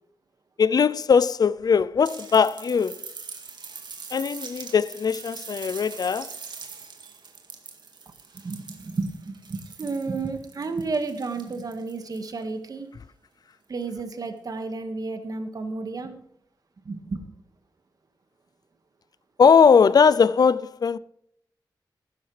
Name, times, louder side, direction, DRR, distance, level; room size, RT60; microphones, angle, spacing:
voice 1, 0.6-3.0 4.1-6.3 19.4-21.0, left 6 dB, 55° left, 0.5 m, -19 dB
sound 1, 2.0-12.4 13.8-13.9, right 5 dB, 65° right, 2.1 m, -42 dB
voice 2, 8.3-12.9 13.7-16.2 16.9-17.3, right 3 dB, 50° right, 1.8 m, -32 dB
15.0 x 13.5 x 3.4 m
wide cardioid pair, 130°, 8 cm